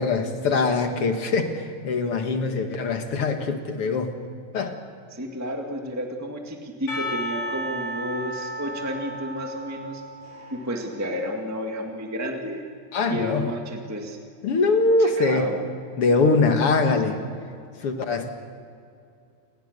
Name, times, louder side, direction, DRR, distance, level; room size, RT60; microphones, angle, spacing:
voice 1, 0.0-4.1 4.5-4.8 12.9-13.5 14.4-15.5 16.0-17.2 17.8-18.3, left 3 dB, 50° left, 5 dB, 2.2 m, -22 dB
voice 2, 5.1-10.0 10.5-12.6 13.0-14.2 15.0-15.6, equal, 5° right, 2 dB, 1.3 m, -31 dB
Percussion / Church bell, 6.9-11.9, equal, 75° left, 6.9 m, -34 dB
29.0 x 19.5 x 6.7 m, 2.4 s
omnidirectional pair, 3.7 m